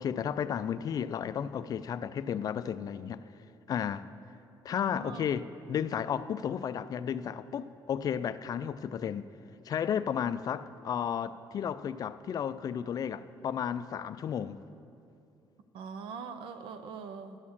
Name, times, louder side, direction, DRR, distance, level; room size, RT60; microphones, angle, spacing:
voice 1, 0.0-3.2 3.7-4.1 4.6-9.3 9.7-14.6, left 8 dB, 45° left, 0.3 m, -33 dB
voice 2, 4.8-5.3 15.7-17.4, right 5 dB, 85° right, 0.7 m, -42 dB
12.0 x 6.4 x 7.2 m
cardioid pair, 125°, 9 cm